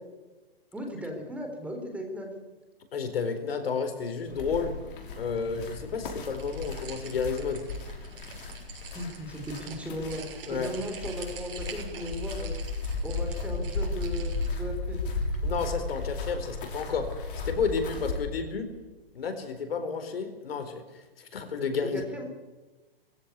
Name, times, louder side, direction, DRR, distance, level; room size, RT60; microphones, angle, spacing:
voice 1, 0.7-2.3 8.9-10.2 10.5-12.6 13.0-15.0 21.8-22.2, equal, 5° right, 3 dB, 4.0 m, -36 dB
voice 2, 2.9-4.7 5.2-7.6 10.5-10.7 15.4-17.1 17.4-18.7 19.1-22.0, left 5 dB, 75° left, 8 dB, 4.4 m, -31 dB
sound 1, 4.3-18.2, left 3 dB, 60° left, 5.9 m, -35 dB
sound 2, 6.3-14.5, right 7 dB, 60° right, 6.7 m, -46 dB
21.0 x 16.0 x 8.4 m, 1.2 s
hypercardioid pair, 150°, 30 cm